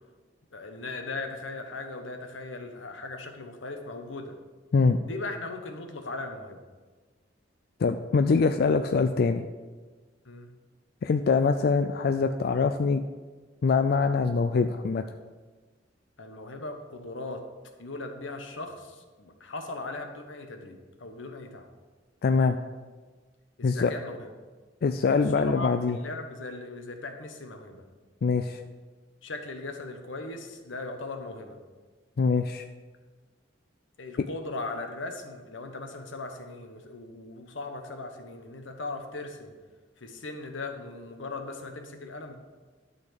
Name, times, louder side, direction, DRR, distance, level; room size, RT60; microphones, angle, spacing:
voice 1, 0.5-4.4 5.0-6.6 10.2-10.5 16.2-17.4 17.8-21.7 23.6-24.3 25.1-27.8 29.2-31.6 34.0-39.5 40.0-42.3, left 2 dB, 85° left, 5 dB, 1.1 m, -38 dB
voice 2, 7.8-9.4 11.0-13.0 13.6-15.0 22.2-22.6 23.6-23.9 24.8-26.0 28.2-28.6 32.2-32.6, left 4 dB, 55° left, 8 dB, 0.4 m, -24 dB
11.5 x 4.3 x 6.6 m, 1.4 s
head